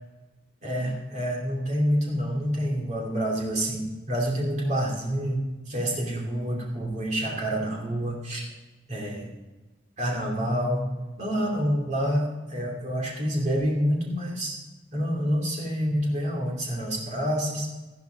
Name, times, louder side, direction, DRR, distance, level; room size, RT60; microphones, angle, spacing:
voice 1, 0.6-8.5 8.9-9.3 10.0-10.9 11.2-14.6 14.9-17.7, equal, 40° right, -2 dB, 2.8 m, -27 dB
13.5 x 12.0 x 4.0 m, 1.2 s
head